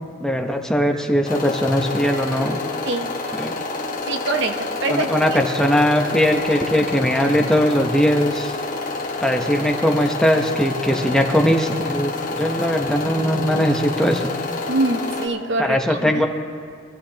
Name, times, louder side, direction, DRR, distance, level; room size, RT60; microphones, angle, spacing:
voice 1, 0.2-2.6 3.3-3.6 4.9-8.5 9.2-14.3 15.6-16.3, equal, 5° left, 3 dB, 0.8 m, -20 dB
sound 1, 1.3-15.3, left 3 dB, 45° left, 1.6 m, -28 dB
voice 2, 4.0-5.4 14.7-16.0, right 2 dB, 65° right, 6 dB, 0.9 m, -24 dB
23.5 x 14.0 x 2.9 m, 2.3 s
head